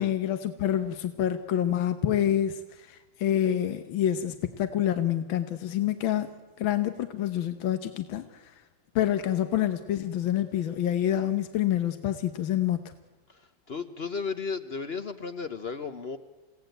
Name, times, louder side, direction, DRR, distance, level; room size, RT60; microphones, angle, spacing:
voice 1, 0.0-6.3 6.6-8.6 8.9-12.9, left 11 dB, 85° left, 9 dB, 1.8 m, -27 dB
voice 2, 13.3-16.2, left 5 dB, 45° left, 10 dB, 0.9 m, -34 dB
29.0 x 17.0 x 9.2 m, 1.3 s
omnidirectional pair, 2.1 m